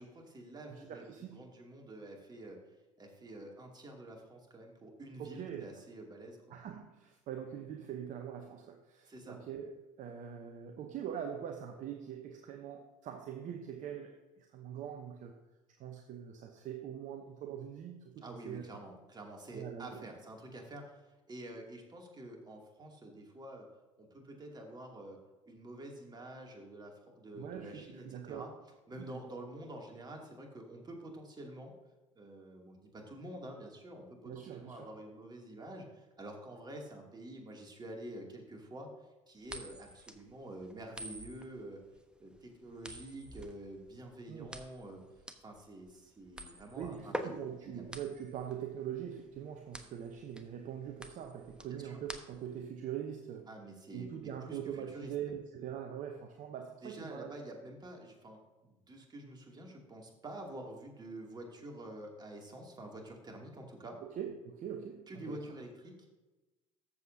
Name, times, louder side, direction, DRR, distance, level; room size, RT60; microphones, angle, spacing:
voice 1, 0.0-1.1 1.3-2.6 3.0-6.6 9.1-9.4 18.2-23.7 24.0-28.5 28.9-31.7 32.2-38.9 39.3-41.8 42.2-45.0 45.4-47.3 47.6-47.8 51.7-52.0 53.5-54.6 54.9-55.4 56.8-64.0 65.1-65.9, right 1 dB, 25° right, 1 dB, 2.5 m, -48 dB
voice 2, 0.7-1.4 5.2-5.7 6.5-15.4 15.8-18.7 19.5-20.2 27.3-28.5 29.0-29.2 34.2-34.9 44.3-44.5 46.5-53.5 53.9-57.3 64.0-65.4, right 9 dB, 45° right, 5 dB, 0.9 m, -43 dB
sound 1, 39.4-52.6, right 1 dB, 5° right, 1.0 m, -47 dB
13.5 x 7.3 x 2.7 m, 1.1 s
hypercardioid pair, 65°, 18 cm